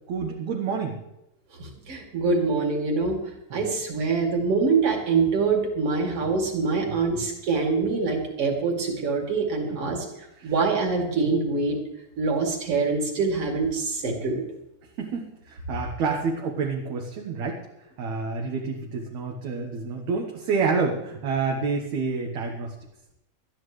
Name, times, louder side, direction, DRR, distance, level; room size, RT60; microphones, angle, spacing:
voice 1, 0.1-1.0 3.5-3.6 7.1-7.2 9.7-10.0 10.4-10.5 15.0-17.7 18.0-22.7, right 4 dB, 65° right, 0 dB, 2.5 m, -28 dB
voice 2, 1.6-3.2 3.5-10.0 10.4-11.8 12.2-14.4, right 4 dB, 45° right, 1 dB, 3.3 m, -24 dB
20.5 x 12.5 x 3.2 m, 0.89 s
omnidirectional pair, 3.6 m